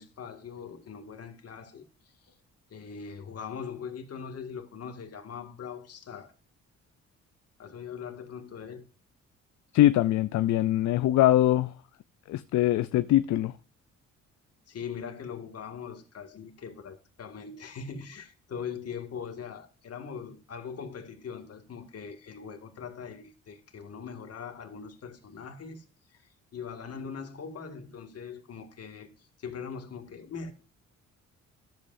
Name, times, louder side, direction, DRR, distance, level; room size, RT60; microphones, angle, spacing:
voice 1, 0.0-2.4 2.7-6.3 7.6-8.8 14.7-25.8 26.1-30.5, left 6 dB, 55° left, 2.0 m, -41 dB
voice 2, 9.7-11.7 12.3-13.5, left 14 dB, 70° left, 0.5 m, -22 dB
13.0 x 7.6 x 2.6 m
cardioid pair, 90°, 30 cm